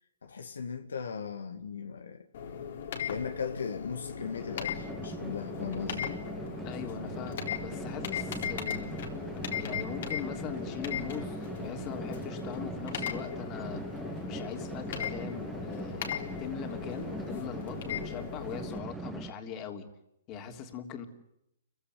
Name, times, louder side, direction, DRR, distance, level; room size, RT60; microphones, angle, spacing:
voice 1, 0.2-2.3 3.1-6.2, left 6 dB, 80° left, 1.9 m, -37 dB
sound 1, 2.3-18.8, left 8 dB, 60° left, 3.6 m, -38 dB
sound 2, 4.2-19.3, right 2 dB, 5° right, 2.1 m, -41 dB
voice 2, 6.6-8.9 9.6-13.8 14.2-19.9 20.3-21.1, left 7 dB, 35° left, 3.3 m, -41 dB
29.5 x 16.0 x 9.9 m
hypercardioid pair, 125°, 0 cm